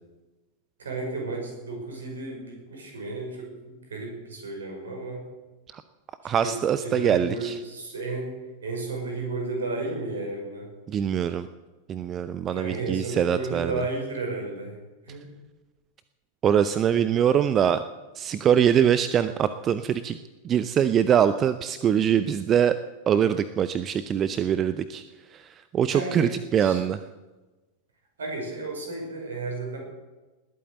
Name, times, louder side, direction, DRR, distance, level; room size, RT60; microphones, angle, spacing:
voice 1, 0.8-5.2 6.4-8.3 8.6-10.7 12.5-14.8 15.1-15.3 25.9-26.8 28.2-29.8, right 3 dB, 65° right, 1 dB, 5.7 m, -33 dB
voice 2, 6.2-7.6 10.9-11.5 11.9-13.7 16.4-17.8 18.1-20.2 20.4-22.8 23.1-25.0 25.3-27.0, right 9 dB, 25° right, 13 dB, 0.6 m, -23 dB
20.0 x 8.6 x 8.0 m, 1.2 s
figure-of-eight pair, 90°, 0 cm